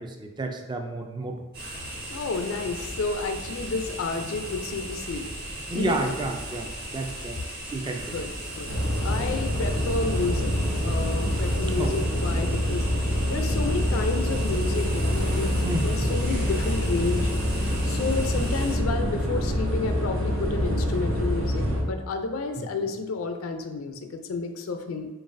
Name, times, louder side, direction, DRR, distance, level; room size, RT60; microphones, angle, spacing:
voice 1, 0.0-1.4 5.7-7.4 7.7-8.1 11.8-12.0 15.6-16.1 22.6-22.7, right 2 dB, 20° right, 4 dB, 0.3 m, -31 dB
sound 1, 1.5-18.8, right 1 dB, 45° right, 1.1 m, -37 dB
voice 2, 2.1-5.3 5.7-6.0 8.1-8.3 8.6-8.7 9.0-10.5 10.8-12.9 13.3-17.3 17.8-25.1, left 4 dB, 70° left, 6 dB, 0.4 m, -30 dB
sound 2, 8.7-21.8, equal, 80° right, 0.8 m, -26 dB
3.9 x 3.8 x 2.5 m, 1.1 s
head